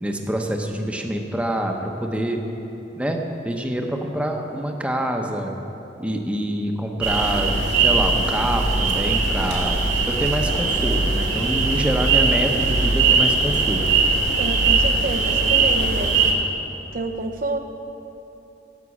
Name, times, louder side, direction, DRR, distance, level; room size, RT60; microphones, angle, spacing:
voice 1, 0.0-2.4 3.0-3.2 3.4-5.5 6.0-9.8 10.1-13.9, right 1 dB, 5° right, 2 dB, 0.9 m, -26 dB
sound 1, 7.0-16.3, right 4 dB, 70° right, 2.2 m, -20 dB
voice 2, 14.4-16.3 16.9-17.6, right 2 dB, 50° right, 3 dB, 0.7 m, -28 dB
11.0 x 8.3 x 8.4 m, 2.9 s
head